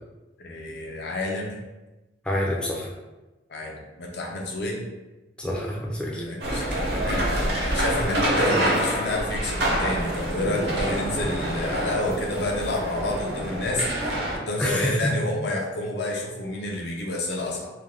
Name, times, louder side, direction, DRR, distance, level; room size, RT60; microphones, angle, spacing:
voice 1, 0.4-1.6 3.5-4.9 6.1-7.3 7.6-13.9 14.3-17.7, left 1 dB, 60° left, 0 dB, 0.5 m, -29 dB
voice 2, 2.2-2.9 5.4-6.2 14.6-15.2, left 1 dB, 5° left, -4 dB, 0.4 m, -27 dB
sound 1, 6.4-14.4, right 1 dB, 60° right, 0.6 m, -26 dB
2.4 x 2.2 x 3.3 m, 1.1 s
head